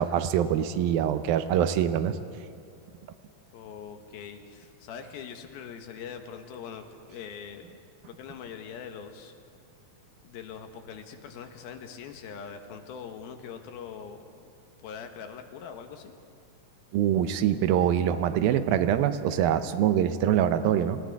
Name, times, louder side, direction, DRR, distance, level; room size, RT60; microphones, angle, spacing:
voice 1, 0.0-2.2 16.9-21.0, right 10 dB, 80° right, 10 dB, 2.6 m, -24 dB
voice 2, 3.5-7.7 8.1-9.3 10.2-14.5 14.8-16.1, left 7 dB, 85° left, 5 dB, 3.2 m, -42 dB
29.0 x 25.5 x 3.6 m, 2.5 s
omnidirectional pair, 4.2 m